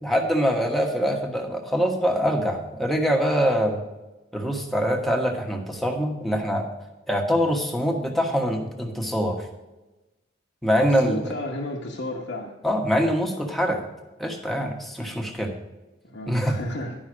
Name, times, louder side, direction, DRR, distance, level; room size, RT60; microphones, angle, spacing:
voice 1, 0.0-3.8 4.3-6.7 7.1-9.5 10.6-11.3 12.6-13.8 14.2-15.5 16.3-16.6, equal, ahead, 1 dB, 1.2 m, -24 dB
voice 2, 10.8-12.5 16.0-17.0, left 1 dB, 75° left, -2 dB, 1.1 m, -33 dB
11.5 x 5.6 x 6.2 m, 1.1 s
head